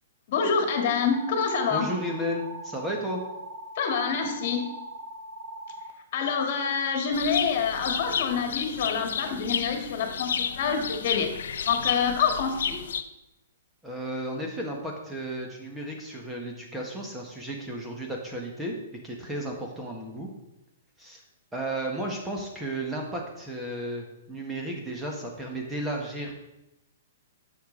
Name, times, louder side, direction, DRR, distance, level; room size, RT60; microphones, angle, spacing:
voice 1, 0.3-1.9 3.8-4.8 6.1-11.3 11.6-12.7, left 6 dB, 50° left, 4 dB, 1.8 m, -26 dB
sound 1, 1.1-5.9, right 1 dB, 35° right, 1.2 m, -41 dB
voice 2, 1.7-3.2 13.8-18.7 19.0-20.3 21.0-21.2 21.5-26.3, right 1 dB, 10° right, 0 dB, 1.5 m, -33 dB
sound 2, 7.1-13.0, left 7 dB, 75° left, 0.6 m, -32 dB
9.3 x 6.8 x 4.0 m, 0.91 s
hypercardioid pair, 150°, 0 cm